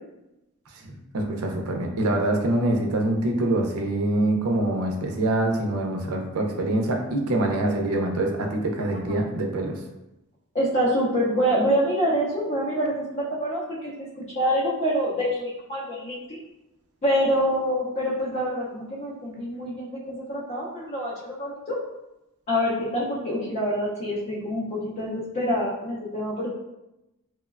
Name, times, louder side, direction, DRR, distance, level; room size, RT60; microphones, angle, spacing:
voice 1, 0.8-9.8, right 1 dB, 85° right, 2 dB, 0.5 m, -25 dB
voice 2, 10.5-16.4 17.0-21.8 22.5-26.5, equal, 35° left, -6 dB, 0.5 m, -26 dB
3.0 x 2.1 x 2.3 m, 0.93 s
head